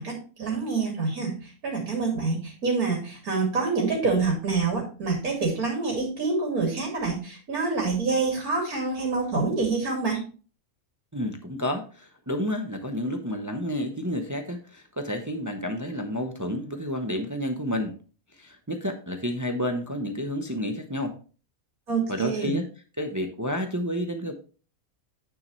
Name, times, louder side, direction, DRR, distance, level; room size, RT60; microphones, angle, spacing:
voice 1, 0.0-10.2 21.9-22.6, right 4 dB, 85° right, 0 dB, 3.0 m, -27 dB
voice 2, 11.1-17.9 18.4-21.2 22.1-22.7 23.0-24.3, equal, 15° right, 6 dB, 0.7 m, -30 dB
9.3 x 6.8 x 3.1 m, 0.36 s
omnidirectional pair, 1.5 m